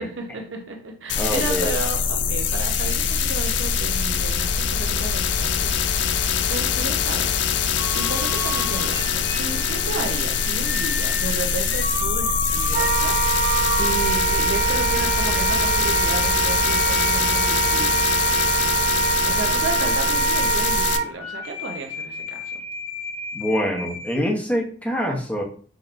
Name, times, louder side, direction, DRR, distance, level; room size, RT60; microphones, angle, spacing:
voice 1, 0.0-7.4 7.9-13.5 13.8-18.1 19.3-22.6, right 3 dB, 80° right, 3 dB, 0.9 m, -33 dB
sound 1, 1.1-21.0, left 6 dB, 70° left, 0.4 m, -23 dB
voice 2, 1.2-1.7 23.3-25.4, equal, 10° left, -1 dB, 0.7 m, -25 dB
sound 2, 7.8-24.2, left 1 dB, 90° left, 1.0 m, -34 dB
Wind instrument woodwind instrument, 12.7-21.1, right 8 dB, 50° right, 0.4 m, -24 dB
5.1 x 2.9 x 2.5 m, 0.43 s
head